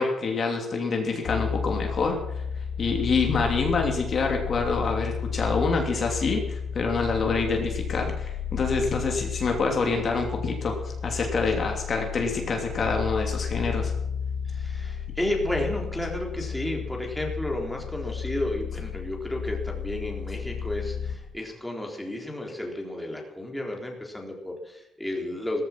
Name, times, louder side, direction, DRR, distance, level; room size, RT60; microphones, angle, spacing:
voice 1, 0.0-2.2 2.8-13.9, left 4 dB, 40° left, 2 dB, 3.0 m, -26 dB
sound 1, 1.2-21.2, left 7 dB, 80° left, 4.0 m, -32 dB
voice 2, 14.5-25.6, left 1 dB, 5° left, 0 dB, 3.9 m, -32 dB
16.0 x 14.5 x 6.0 m, 0.89 s
cardioid pair, 130°, 0 cm